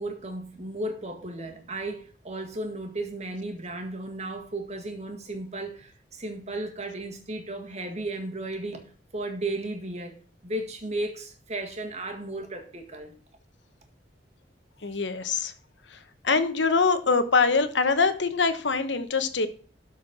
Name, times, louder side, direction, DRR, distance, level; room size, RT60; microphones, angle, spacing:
voice 1, 0.0-8.8 9.1-10.2 10.4-13.1, right 2 dB, 40° right, 1.8 m, -34 dB
voice 2, 14.8-15.5 15.9-16.0 16.2-19.5, left 4 dB, 90° left, 1.1 m, -23 dB
12.5 x 4.7 x 6.0 m
head